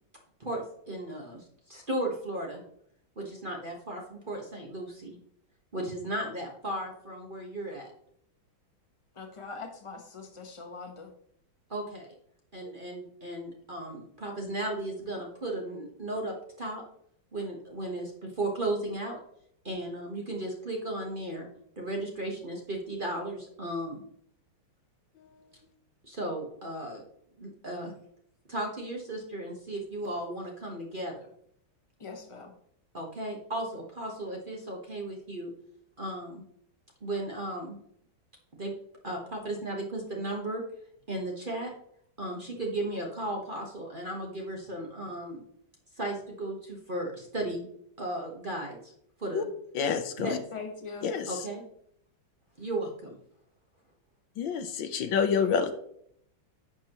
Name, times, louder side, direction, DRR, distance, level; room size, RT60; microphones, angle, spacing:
voice 1, 0.4-2.6 3.2-5.2 5.7-7.9 11.7-12.1 12.5-16.8 17.3-19.2 19.6-21.5 21.8-24.0 26.0-27.0 27.4-27.9 28.5-31.3 32.9-35.5 36.0-36.4 37.0-37.8 38.6-38.7 39.0-40.6 41.1-41.7 42.2-45.4 46.0-47.7 48.0-48.9 49.2-49.5 50.2-50.4 51.3-51.6 52.6-53.2, right 1 dB, 30° right, -1 dB, 1.2 m, -35 dB
voice 2, 9.1-11.1 32.0-32.5 50.5-51.1, left 4 dB, 20° left, 3 dB, 0.9 m, -42 dB
voice 3, 49.7-50.4 51.0-51.5 54.4-55.7, left 6 dB, 70° left, 9 dB, 1.4 m, -28 dB
10.5 x 7.3 x 3.0 m, 0.69 s
omnidirectional pair, 2.2 m